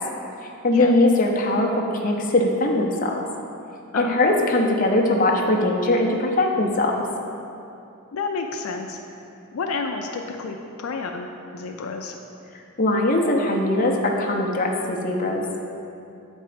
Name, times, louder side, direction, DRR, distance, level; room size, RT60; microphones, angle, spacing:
voice 1, 0.6-3.2 3.9-7.0 12.8-15.4, left 2 dB, 40° left, 0 dB, 0.7 m, -21 dB
voice 2, 8.1-9.0 9.5-12.2, left 4 dB, 75° left, 3 dB, 0.4 m, -30 dB
7.9 x 4.4 x 5.0 m, 2.7 s
head